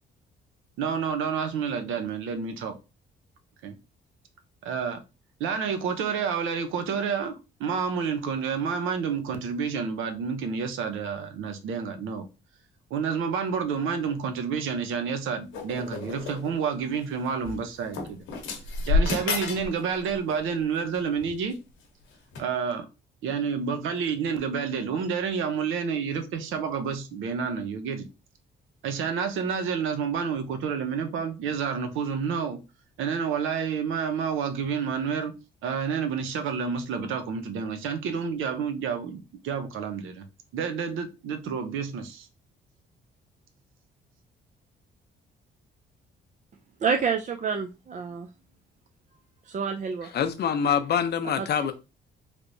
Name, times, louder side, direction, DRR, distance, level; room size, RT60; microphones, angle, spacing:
voice 1, 0.8-2.7 3.6-3.8 4.6-5.0 5.4-12.2 12.9-18.2 18.9-21.6 22.4-22.9 23.2-28.1 28.8-32.6 33.0-35.3 35.6-40.2 40.5-42.3, right 6 dB, 85° right, 0.7 m, -29 dB
sound 1, 15.5-16.5 17.4-17.5 17.9-19.7 20.0-20.3 21.2-21.5 22.3-22.4, left 4 dB, 90° left, 0.8 m, -29 dB
voice 2, 46.8-48.3 49.5-50.1 51.4-51.5, right 6 dB, 40° right, 0.4 m, -28 dB
voice 3, 50.0-51.7, left 8 dB, 55° left, 0.6 m, -25 dB
3.3 x 2.9 x 2.6 m
cardioid pair, 90°, 20 cm